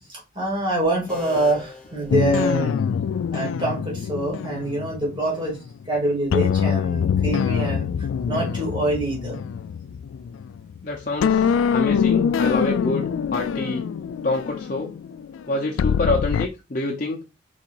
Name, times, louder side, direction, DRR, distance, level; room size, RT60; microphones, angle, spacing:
voice 1, 0.1-2.8 3.3-5.6 5.9-7.9 8.3-9.4, right 1 dB, 25° right, 2.1 m, -25 dB
sound 1, 1.1-3.0, left 3 dB, 5° left, 0.8 m, -40 dB
sound 2, 2.1-5.8 6.3-10.8 11.2-16.5, left 7 dB, 85° left, 0.3 m, -24 dB
voice 2, 10.8-13.9 14.2-14.9 15.5-17.2, left 2 dB, 40° left, 0.6 m, -26 dB
4.6 x 4.0 x 2.5 m
head